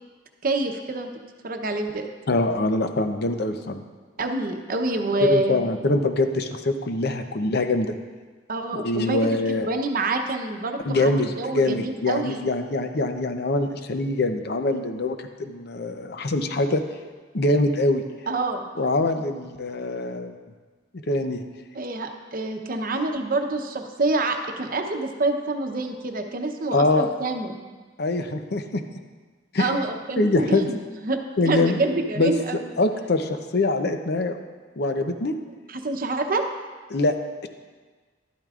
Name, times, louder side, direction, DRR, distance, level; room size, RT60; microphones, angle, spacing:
voice 1, 0.4-1.1 1.4-2.0 4.2-5.6 8.5-12.4 18.3-18.7 21.7-27.5 29.6-32.7 35.7-36.4, right 2 dB, 50° right, 5 dB, 0.8 m, -27 dB
voice 2, 2.3-3.8 5.2-7.9 8.7-9.7 10.9-16.8 17.3-18.0 18.8-20.3 21.1-21.4 26.7-27.1 28.0-28.8 29.5-29.7 30.2-30.7 31.4-31.8 32.2-32.3 32.8-34.4 34.8-35.3 36.9-37.1, left 2 dB, 60° left, 7 dB, 0.7 m, -24 dB
12.5 x 12.0 x 2.5 m, 1.4 s
head